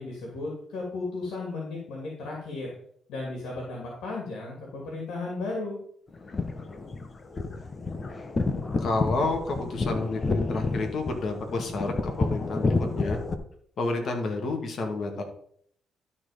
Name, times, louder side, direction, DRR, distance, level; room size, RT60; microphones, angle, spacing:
voice 1, 0.0-2.7 3.1-5.8, left 3 dB, 85° left, -2 dB, 2.6 m, -35 dB
sound 1, 6.1-13.3, left 3 dB, 35° left, 1.0 m, -29 dB
voice 2, 8.8-13.2 13.8-15.2, left 3 dB, 55° left, 3 dB, 2.1 m, -30 dB
12.0 x 4.3 x 5.1 m, 0.65 s
cardioid pair, 90°, 0 cm